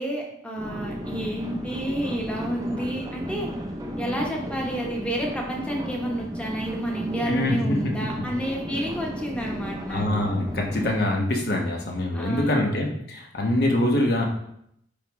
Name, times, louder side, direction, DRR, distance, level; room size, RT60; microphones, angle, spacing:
voice 1, 0.0-3.5 4.0-10.2 12.1-12.9, right 1 dB, 5° left, -1 dB, 1.0 m, -30 dB
sound 1, 0.6-11.0, equal, 20° right, 0.6 m, -34 dB
voice 2, 7.2-7.9 9.9-14.3, left 1 dB, 55° left, 0 dB, 1.2 m, -24 dB
9.9 x 3.6 x 3.1 m, 0.72 s
head